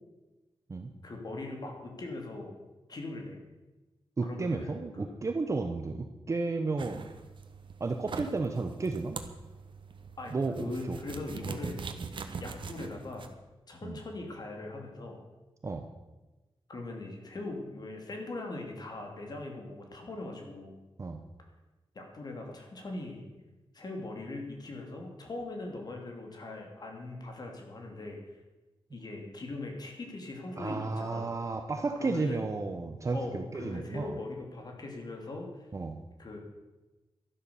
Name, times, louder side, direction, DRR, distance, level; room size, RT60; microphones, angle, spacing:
voice 1, 1.0-2.6 2.9-3.4 4.2-5.1 10.2-11.8 12.4-13.3 13.7-15.2 16.7-20.7 21.9-23.3 23.7-28.2 28.9-31.3 32.0-32.4 33.1-35.7 36.2-36.4, left 2 dB, 45° left, 2 dB, 2.7 m, -40 dB
voice 2, 4.2-7.1 7.8-9.2 10.3-11.0 13.8-14.0 15.6-15.9 21.0-21.2 30.6-34.2 35.7-36.0, right 3 dB, 35° right, 6 dB, 0.8 m, -33 dB
sound 1, 6.8-13.3, right 5 dB, 60° right, 1.2 m, -42 dB
12.5 x 11.5 x 7.0 m, 1.1 s
wide cardioid pair, 180°, 9 cm